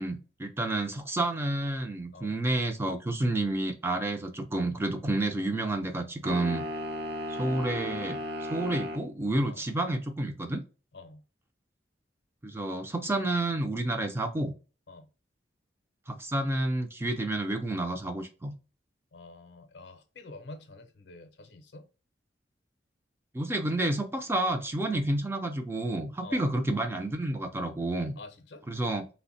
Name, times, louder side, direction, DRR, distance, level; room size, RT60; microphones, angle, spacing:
voice 1, 0.0-6.6 7.3-10.6 12.4-14.5 16.1-18.5 23.3-28.2 28.7-29.0, right 2 dB, 15° right, 0.4 m, -30 dB
sound 1, 6.2-9.1, left 1 dB, 65° right, 0.7 m, -35 dB
voice 2, 10.9-11.2 14.9-15.1 19.1-21.9 24.9-25.1 26.2-26.5 28.2-28.6, left 2 dB, 70° left, 0.6 m, -47 dB
3.3 x 2.1 x 2.5 m
head